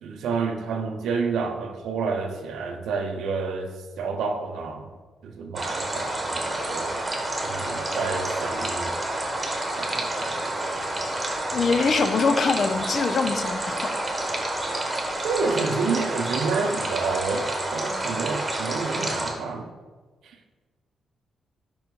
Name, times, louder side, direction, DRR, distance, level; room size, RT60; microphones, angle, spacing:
voice 1, 0.0-4.9 5.2-6.9 7.4-9.0 9.8-10.6 15.2-19.7 20.2-20.4, right 4 dB, 90° right, 5 dB, 0.8 m, -29 dB
sound 1, 5.6-19.3, right 1 dB, 15° right, 1.2 m, -29 dB
voice 2, 11.5-13.9, left 4 dB, 45° left, 9 dB, 0.5 m, -23 dB
5.3 x 5.3 x 4.6 m, 1.3 s
cardioid pair, 145°, 0 cm